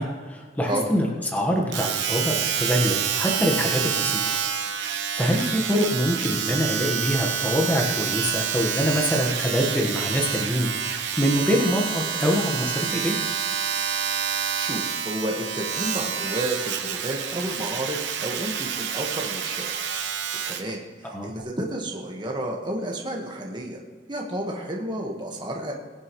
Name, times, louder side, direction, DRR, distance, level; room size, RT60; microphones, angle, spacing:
voice 1, 0.0-4.4 5.2-13.2 21.0-21.3, equal, 10° left, 0 dB, 1.3 m, -25 dB
Domestic sounds home sounds, 1.7-20.7 21.4-21.5, right 8 dB, 75° right, 1.0 m, -28 dB
voice 2, 14.6-19.6 20.4-23.8 24.1-25.7, right 1 dB, 25° right, -1 dB, 1.4 m, -31 dB
22.5 x 7.5 x 3.1 m, 1.5 s
head